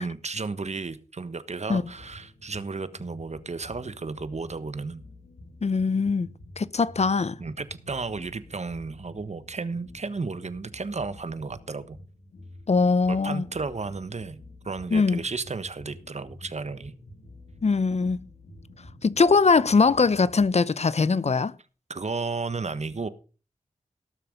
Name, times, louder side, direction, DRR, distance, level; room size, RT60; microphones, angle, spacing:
voice 1, 0.0-5.0 7.4-12.0 13.1-14.4 14.6-16.9 21.9-23.1, right 4 dB, 55° right, 1.3 m, -33 dB
sound 1, 1.7-20.5, left 1 dB, 85° left, 2.8 m, -49 dB
voice 2, 5.6-6.3 6.6-7.4 12.7-13.4 14.9-15.2 17.6-18.3 19.0-21.5, left 4 dB, 50° left, 0.7 m, -21 dB
18.0 x 6.8 x 5.2 m
cardioid pair, 45°, 14 cm